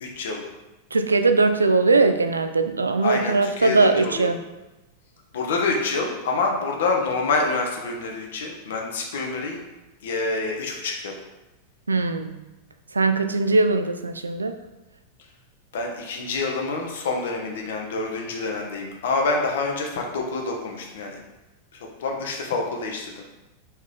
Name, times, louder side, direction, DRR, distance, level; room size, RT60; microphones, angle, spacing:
voice 1, 0.0-0.4 3.0-4.3 5.3-9.6 10.0-11.1 15.7-21.2 21.7-23.4, left 3 dB, 60° left, 1 dB, 0.8 m, -27 dB
voice 2, 0.9-4.4 11.9-12.3 12.9-14.6, right 3 dB, 75° right, 8 dB, 0.3 m, -20 dB
4.2 x 3.6 x 3.3 m, 1.0 s
figure-of-eight pair, 90°, 0 cm